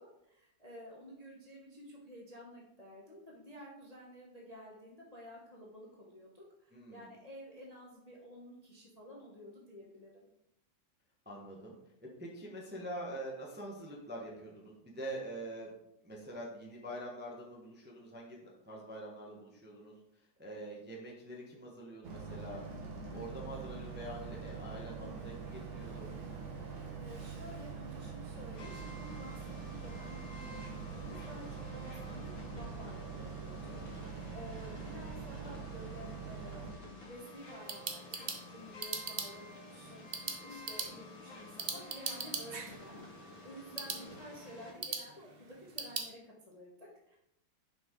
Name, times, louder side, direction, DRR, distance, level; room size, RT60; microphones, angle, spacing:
voice 1, 0.0-10.2 23.1-23.5 27.0-29.4 29.7-30.7 30.9-36.7 37.0-47.2, equal, 30° left, -3 dB, 0.8 m, -52 dB
voice 2, 6.7-7.1 11.2-15.7 16.0-19.9 20.4-22.6 23.1-26.1 43.8-44.1, right 1 dB, 5° right, -2 dB, 0.8 m, -45 dB
Boat Water vehicle, 22.0-36.7, right 5 dB, 75° right, 2.2 m, -44 dB
sound 1, 28.5-44.7, left 1 dB, 80° left, 2.1 m, -52 dB
sound 2, 37.3-46.1, right 5 dB, 60° right, 0.6 m, -42 dB
6.4 x 5.6 x 3.8 m, 0.82 s
omnidirectional pair, 2.1 m